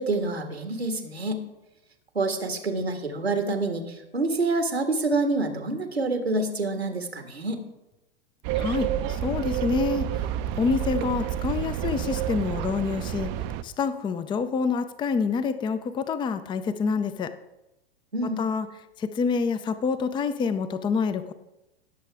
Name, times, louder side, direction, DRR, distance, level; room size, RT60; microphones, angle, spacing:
voice 1, 0.0-1.4 2.2-7.6 18.1-18.4, right 2 dB, 90° right, 6 dB, 1.8 m, -27 dB
sound 1, 8.4-13.6, right 11 dB, 35° right, 0.6 m, -29 dB
voice 2, 8.5-10.1 10.6-13.3 13.6-17.3 18.4-18.7 19.0-21.3, left 5 dB, 15° left, 12 dB, 0.6 m, -27 dB
18.0 x 7.4 x 3.5 m, 0.94 s
figure-of-eight pair, 95°, 31 cm